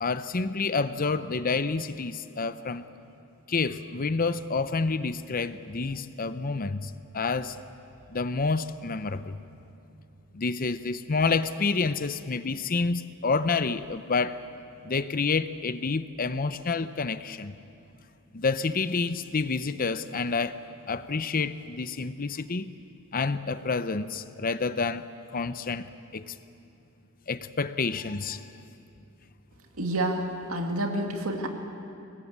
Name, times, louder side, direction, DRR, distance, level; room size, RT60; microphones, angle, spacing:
voice 1, 0.0-2.8 3.5-7.6 8.1-9.4 10.3-14.4 14.8-17.5 18.3-20.6 20.9-22.7 23.1-26.4 27.3-28.5, left 4 dB, 40° left, 12 dB, 0.7 m, -29 dB
voice 2, 29.8-31.5, right 1 dB, 70° right, 3 dB, 2.3 m, -29 dB
24.0 x 20.0 x 8.3 m, 2.7 s
head